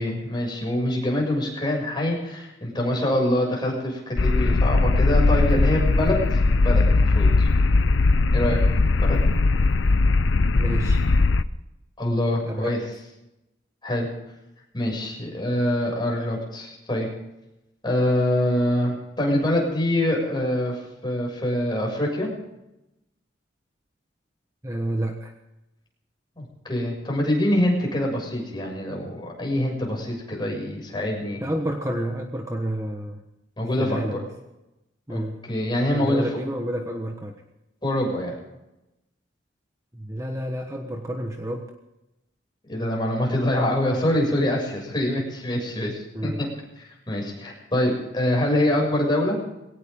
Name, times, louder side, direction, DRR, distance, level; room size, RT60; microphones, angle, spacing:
voice 1, 0.0-7.5 8.3-8.6 9.0-9.2 12.0-12.8 13.8-14.1 14.7-17.1 17.8-22.3 26.4-31.4 33.6-34.2 35.1-36.3 37.8-38.4 42.7-46.5 46.8-49.4, left 1 dB, 25° left, -1 dB, 6.9 m, -25 dB
sound 1, 4.2-11.4, left 3 dB, 85° left, 0.7 m, -19 dB
voice 2, 10.5-11.1 12.4-12.7 24.6-25.3 31.4-33.2 33.8-34.3 35.1-35.4 35.9-37.4 39.9-41.7 46.1-46.5, right 1 dB, 15° right, 3 dB, 1.3 m, -30 dB
21.5 x 18.0 x 3.8 m, 0.92 s
head